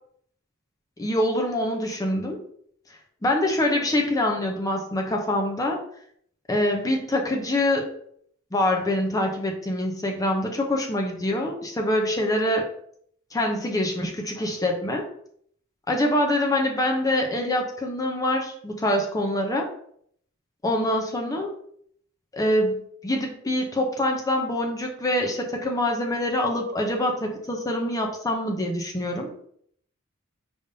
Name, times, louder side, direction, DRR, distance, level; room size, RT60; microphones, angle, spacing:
voice 1, 1.0-2.4 3.2-5.8 6.5-7.9 8.5-12.7 13.3-15.0 15.9-19.7 20.6-21.5 22.3-29.3, left 1 dB, 15° left, 1 dB, 0.6 m, -25 dB
5.2 x 3.5 x 2.7 m, 0.65 s
head